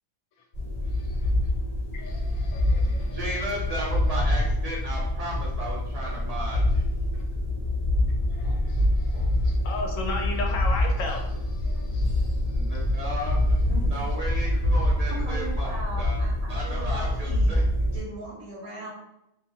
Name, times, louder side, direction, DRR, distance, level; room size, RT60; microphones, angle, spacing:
sound 1, 0.5-18.0, left 1 dB, 40° left, 0.8 m, -26 dB
voice 1, 0.9-1.3 1.9-3.2 7.1-7.2 8.3-12.7, left 2 dB, 70° left, 0.9 m, -36 dB
voice 2, 2.8-6.8 12.3-13.6 13.9-15.7 16.0-16.2 16.5-17.6, right 1 dB, 50° right, 0.4 m, -35 dB
voice 3, 15.1-17.6 17.9-18.9, right 2 dB, 90° right, 1.1 m, -38 dB
2.6 x 2.5 x 2.6 m
omnidirectional pair, 1.5 m